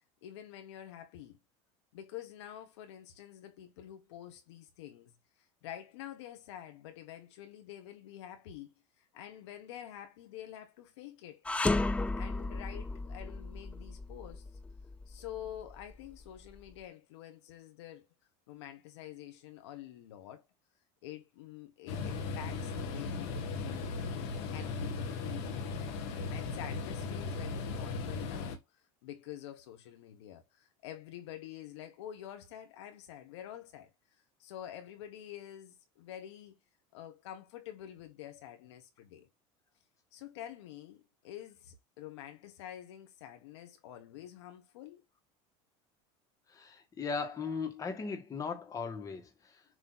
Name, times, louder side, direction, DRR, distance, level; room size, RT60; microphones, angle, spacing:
voice 1, 0.2-1.4 1.9-5.1 5.6-11.5 12.2-14.5 15.1-18.1 18.5-20.4 21.0-23.9 24.5-25.5 26.3-28.6 29.0-33.9 34.4-36.6 36.9-39.3 40.1-45.0, left 11 dB, 85° left, 1.7 m, -47 dB
sound 1, 11.4-16.7, left 2 dB, 10° left, 0.4 m, -35 dB
sound 2, 21.9-28.6, left 4 dB, 70° left, 1.7 m, -37 dB
voice 2, 46.5-49.6, left 5 dB, 25° left, 1.9 m, -38 dB
7.0 x 3.3 x 4.1 m
supercardioid pair, 135°, 14 cm